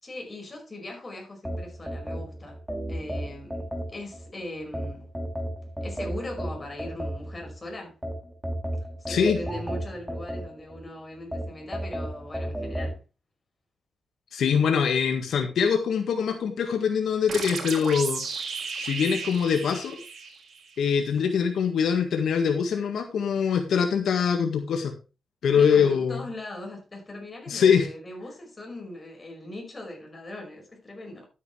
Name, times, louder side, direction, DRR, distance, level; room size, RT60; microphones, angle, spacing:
voice 1, 0.0-2.6 2.9-3.6 3.9-5.1 5.8-8.0 9.0-13.0 25.5-31.3, left 1 dB, 25° left, 5.3 m, -39 dB
sound 1, 1.4-4.2 4.7-7.5 8.0-10.8 11.3-12.9, equal, 5° right, 2.8 m, -33 dB
voice 2, 9.1-9.4 14.3-18.2 18.8-20.0 20.8-24.9 25.4-26.3 27.5-27.9, left 7 dB, 85° left, 1.7 m, -23 dB
sound 2, 17.3-20.8, right 5 dB, 70° right, 4.5 m, -34 dB
12.5 x 9.3 x 3.3 m
wide cardioid pair, 115°, 0 cm